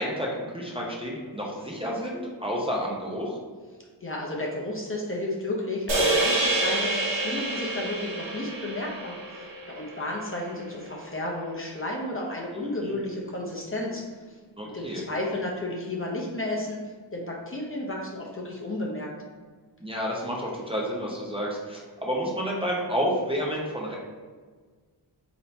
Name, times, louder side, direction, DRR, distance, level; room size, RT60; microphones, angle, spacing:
voice 1, 0.0-3.4 12.5-12.9 14.6-15.0 19.8-24.0, equal, 15° right, -4 dB, 0.7 m, -30 dB
voice 2, 4.0-14.0 14.6-16.8 17.1-19.1, left 2 dB, 30° left, -2 dB, 0.7 m, -32 dB
sound 1, 5.9-10.3, right 2 dB, 75° right, 1.0 m, -27 dB
3.6 x 2.9 x 4.0 m, 1.5 s
wide cardioid pair, 110°, 44 cm